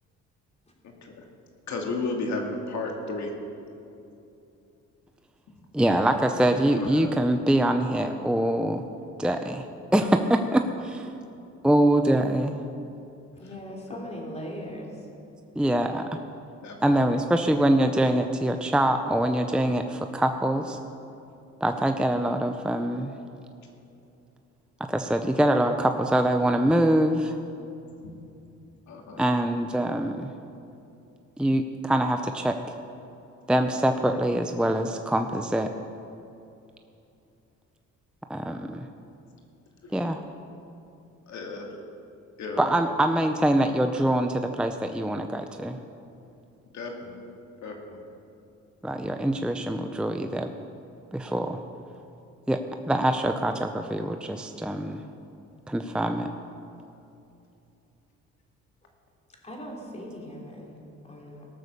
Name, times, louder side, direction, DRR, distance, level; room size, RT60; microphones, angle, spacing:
voice 1, 1.7-3.3 6.8-7.1 16.6-16.8 28.0-28.1 28.9-29.2 39.8-40.2 41.3-41.7 42.4-42.6 46.7-47.2 47.6-48.0, left 3 dB, 65° left, 1 dB, 2.2 m, -33 dB
voice 2, 5.7-8.8 9.2-9.7 9.9-11.1 11.6-12.5 15.6-16.2 16.8-20.8 21.6-23.1 24.9-27.4 29.2-30.3 31.4-32.6 33.5-35.7 38.3-38.9 39.9-40.2 42.6-45.8 48.8-50.5 51.1-51.6 52.5-52.6 52.9-55.0 55.7-56.3, right 1 dB, 5° right, 6 dB, 0.6 m, -24 dB
voice 3, 13.4-15.1 59.4-61.5, equal, 20° left, -1 dB, 3.2 m, -39 dB
17.5 x 6.9 x 6.7 m, 2.7 s
cardioid pair, 90°, 30 cm